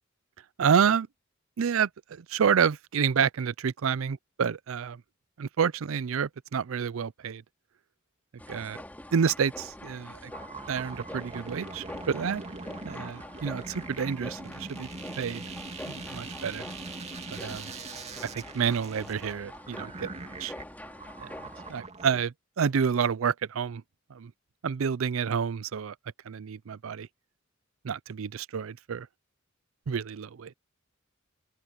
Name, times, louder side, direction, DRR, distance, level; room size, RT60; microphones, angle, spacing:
voice 1, 0.6-1.1 1.6-5.0 5.4-7.4 8.5-8.8 9.1-10.3 10.7-12.4 12.9-14.9 15.2-15.4 15.9-16.6 17.3-17.7 18.3-20.5 21.2-21.3 21.7-23.8 24.1-24.3 24.6-25.9 26.3-27.1 27.8-29.1 29.9-30.5, right 7 dB, 75° right, 0.5 m, -29 dB
sound 1, 8.4-21.8, left 1 dB, 10° left, 2.8 m, -45 dB
sound 2, 10.3-22.2, right 3 dB, 30° right, 2.4 m, -42 dB
open air
head